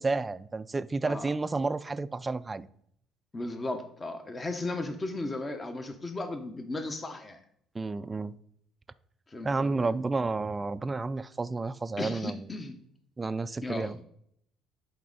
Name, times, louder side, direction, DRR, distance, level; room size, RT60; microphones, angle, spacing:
voice 1, 0.0-2.7 7.7-8.4 9.4-12.4 13.2-14.0, right 3 dB, 20° right, 14 dB, 0.4 m, -31 dB
voice 2, 3.3-7.4 9.3-10.0 12.0-12.8 13.6-14.0, left 2 dB, 25° left, 7 dB, 0.9 m, -36 dB
10.5 x 4.4 x 4.0 m, 0.69 s
supercardioid pair, 90°, 0 cm